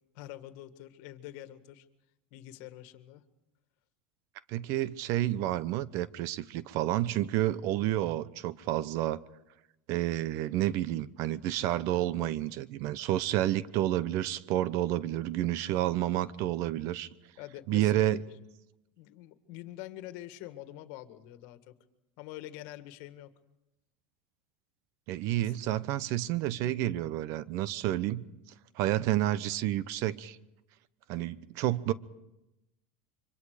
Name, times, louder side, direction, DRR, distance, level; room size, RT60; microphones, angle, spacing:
voice 1, 0.1-1.9 2.3-3.2 17.4-18.2 19.0-21.7 22.2-23.3 25.4-25.5, left 14 dB, 65° left, 1.9 m, -45 dB
voice 2, 4.5-9.2 9.9-17.1 17.7-18.2 25.1-28.2 28.8-30.4 31.1-31.9, right 14 dB, 60° right, 0.9 m, -30 dB
26.0 x 24.5 x 5.1 m
supercardioid pair, 115°, 6 cm